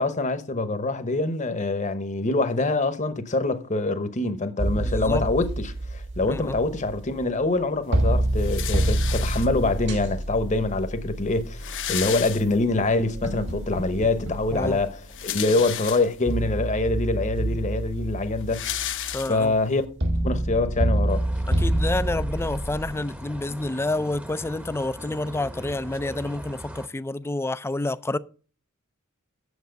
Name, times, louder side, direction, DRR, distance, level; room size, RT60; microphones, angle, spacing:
voice 1, 0.0-18.7 19.3-19.8 20.2-21.2, left 2 dB, 35° left, 0.9 m, -25 dB
sound 1, 4.6-7.6 7.9-15.4 16.2-22.9, right 1 dB, 55° right, 1.4 m, -28 dB
voice 2, 4.8-5.2 6.3-6.6 14.5-14.8 19.1-19.5 21.5-28.2, left 2 dB, 10° left, 0.4 m, -29 dB
sound 2, 8.4-9.8 10.7-10.8 11.0-11.1 11.3-12.9 13.3-13.4 14.8-16.4 17.0-17.1 17.4-19.7, left 11 dB, 60° left, 0.8 m, -33 dB
sound 3, 21.1-26.9, equal, 5° right, 0.8 m, -40 dB
8.2 x 7.2 x 5.1 m
head